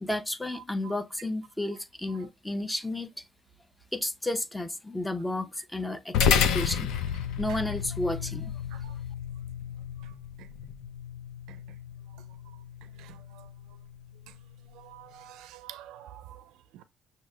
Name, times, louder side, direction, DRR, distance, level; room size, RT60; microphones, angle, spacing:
voice 1, 0.0-3.2 3.9-6.2 6.5-6.9 7.4-8.5, left 1 dB, 10° left, 0.7 m, -32 dB
voice 2, 0.5-0.9 2.1-2.3 7.5-7.6 8.7-9.0 10.0-10.5 11.5-11.8 12.1-13.5 14.3-14.4 14.7-16.8, right 12 dB, 80° right, 0.4 m, -50 dB
sound 1, 6.1-14.8, left 7 dB, 80° left, 0.5 m, -31 dB
6.1 x 2.8 x 2.3 m
supercardioid pair, 70°, 0 cm